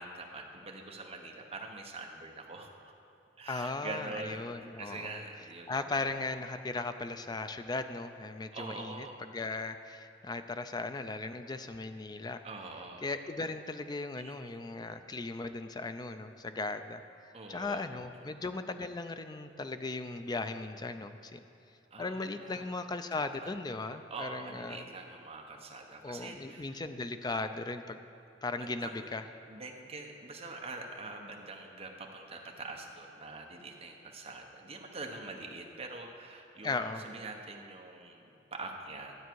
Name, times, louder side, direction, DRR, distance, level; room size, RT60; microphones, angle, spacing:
voice 1, 0.0-2.9 3.4-6.0 8.5-9.2 12.4-13.1 14.2-14.3 17.3-17.9 18.1-18.3 21.9-22.8 23.4-23.5 24.1-26.8 28.6-29.1 29.5-39.1, right 3 dB, 30° right, 1 dB, 1.0 m, -44 dB
voice 2, 3.5-5.2 5.7-12.4 13.0-17.0 17.5-21.4 22.0-24.8 26.0-28.0 28.4-29.2 36.6-37.0, left 3 dB, 20° left, 9 dB, 0.4 m, -37 dB
12.5 x 8.1 x 4.6 m, 2.7 s
head